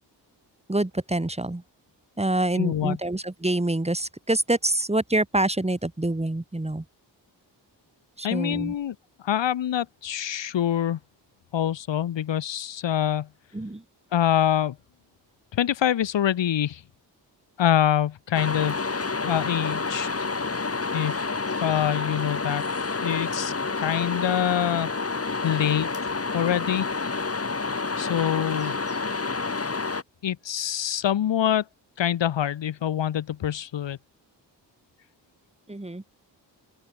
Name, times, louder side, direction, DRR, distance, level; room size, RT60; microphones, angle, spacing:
voice 1, 0.7-1.6 2.2-6.8 8.2-8.7 13.5-13.8 35.7-36.0, right 1 dB, 15° right, 4.7 m, -26 dB
voice 2, 2.6-3.0 8.2-9.0 9.2-11.0 11.5-13.3 14.1-14.8 15.5-16.8 17.6-18.8 19.2-20.1 20.9-21.2 21.6-22.6 23.0-24.9 25.4-25.9 26.3-26.9 28.0-28.8 30.2-31.6 32.0-34.0, left 10 dB, 85° left, 1.9 m, -25 dB
sound 1, 18.3-30.0, left 4 dB, 35° left, 4.1 m, -29 dB
open air
cardioid pair, 75°, 43 cm